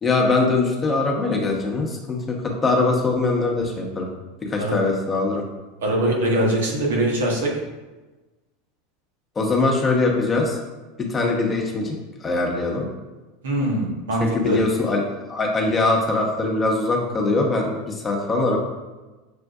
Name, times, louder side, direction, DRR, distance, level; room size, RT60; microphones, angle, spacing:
voice 1, 0.0-4.1 4.5-5.4 9.4-10.6 11.1-11.9 12.2-12.9 14.2-15.0 15.3-18.6, left 3 dB, 25° left, 0 dB, 1.0 m, -22 dB
voice 2, 5.8-7.5 13.4-14.6, right 1 dB, 80° right, -1 dB, 1.0 m, -22 dB
6.8 x 2.4 x 2.4 m, 1.2 s
hypercardioid pair, 95°, 0 cm